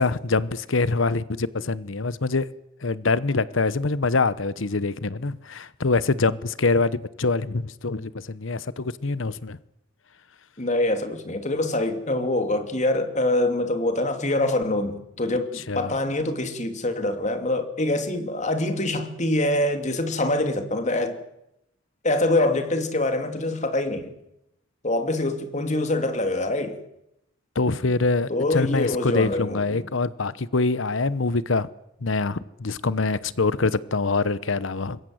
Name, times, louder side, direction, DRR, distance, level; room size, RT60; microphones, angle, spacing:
voice 1, 0.0-2.5 2.8-9.6 15.5-15.9 27.5-31.7 32.0-35.0, left 3 dB, 75° left, 1.0 m, -24 dB
voice 2, 10.6-21.2 22.0-24.1 24.8-26.8 28.3-29.9, left 2 dB, 35° left, 2.9 m, -25 dB
26.5 x 22.0 x 8.0 m
head